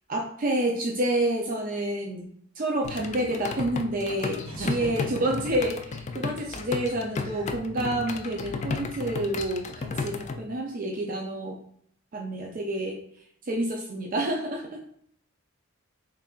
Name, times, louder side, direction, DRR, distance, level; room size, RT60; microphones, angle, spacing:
voice 1, 0.1-11.6 12.1-13.0 13.4-14.8, right 1 dB, 45° right, 0 dB, 0.5 m, -29 dB
sound 1, 2.8-10.4, left 4 dB, 35° left, 0.3 m, -34 dB
voice 2, 4.4-5.3 7.2-7.6, right 2 dB, 75° right, 0 dB, 1.0 m, -37 dB
3.7 x 3.3 x 2.4 m, 0.66 s
head